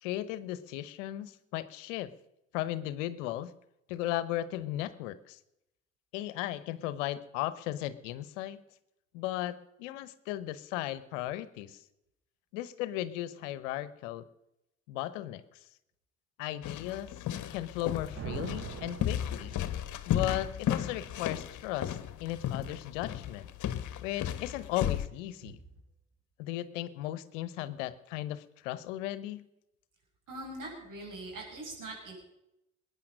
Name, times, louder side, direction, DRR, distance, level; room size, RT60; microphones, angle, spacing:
voice 1, 0.0-2.1 2.5-3.5 3.9-5.4 6.1-8.6 9.1-11.8 12.5-14.3 14.9-15.6 16.4-17.1 17.5-19.5 20.1-23.5 24.0-25.6 26.4-29.4, left 14 dB, 80° left, 16 dB, 1.0 m, -36 dB
sound 1, 16.6-25.1, left 10 dB, 55° left, 1.3 m, -34 dB
sound 2, 18.1-20.1, right 8 dB, 40° right, 1.0 m, -42 dB
voice 2, 30.3-32.1, right 2 dB, 55° right, 1 dB, 7.1 m, -42 dB
21.0 x 9.7 x 6.4 m, 0.86 s
hypercardioid pair, 60°, 37 cm